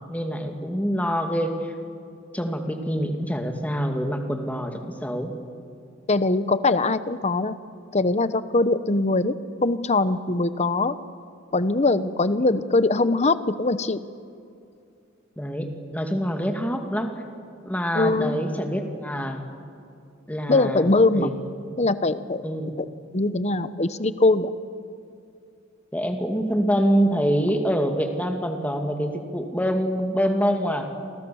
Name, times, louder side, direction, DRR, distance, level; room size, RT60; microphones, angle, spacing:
voice 1, 0.1-1.7 2.3-5.3 15.4-17.1 17.6-19.4 20.3-20.9 21.1-21.3 21.7-21.8 22.4-22.7 25.9-30.9, equal, 5° left, 4 dB, 2.4 m, -25 dB
voice 2, 6.1-7.6 7.9-9.3 9.6-11.0 11.5-14.0 17.9-18.4 20.5-21.3 21.8-22.4 22.8-22.9 23.1-24.5, left 2 dB, 35° left, 13 dB, 0.9 m, -22 dB
30.0 x 24.5 x 7.1 m, 2.4 s
head